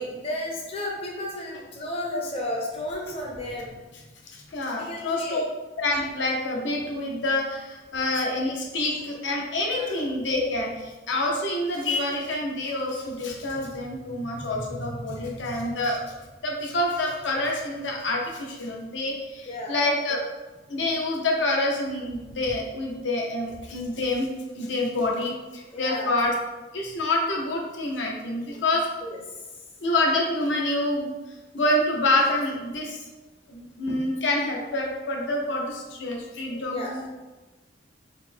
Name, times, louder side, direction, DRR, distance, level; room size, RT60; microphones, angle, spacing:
voice 1, 0.0-3.7 4.7-5.4 9.7-10.0 15.2-15.3 19.5-19.8 25.7-26.1 29.0-29.2 36.5-37.0, left 1 dB, 35° left, -1 dB, 0.6 m, -33 dB
voice 2, 4.3-5.5 5.8-16.1 16.4-20.2 20.7-24.3 24.5-26.3 26.7-28.9 29.8-31.1 31.5-33.0 33.5-37.1, left 2 dB, 85° left, -1 dB, 0.7 m, -27 dB
3.8 x 2.1 x 4.3 m, 1.1 s
head